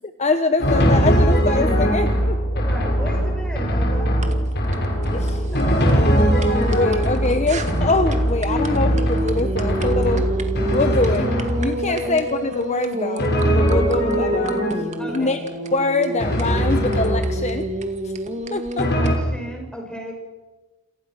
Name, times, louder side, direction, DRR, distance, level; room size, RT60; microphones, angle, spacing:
voice 1, 0.2-2.6 5.1-5.6 5.9-10.4 10.7-11.3 11.6-14.6 15.1-15.4 15.7-17.7 18.0-18.1 18.5-18.9, left 3 dB, 30° left, 8 dB, 1.3 m, -24 dB
Drum, 0.6-12.0 13.2-15.2 16.2-17.7 18.8-19.2, equal, 50° left, 6.2 m, -21 dB
voice 2, 2.6-4.2 11.9-12.2 15.0-15.4 18.8-20.1, equal, 5° left, 1 dB, 7.3 m, -34 dB
sound 1, 4.2-19.1, right 1 dB, 35° right, 2.3 m, -28 dB
28.5 x 28.0 x 6.4 m, 1.2 s
head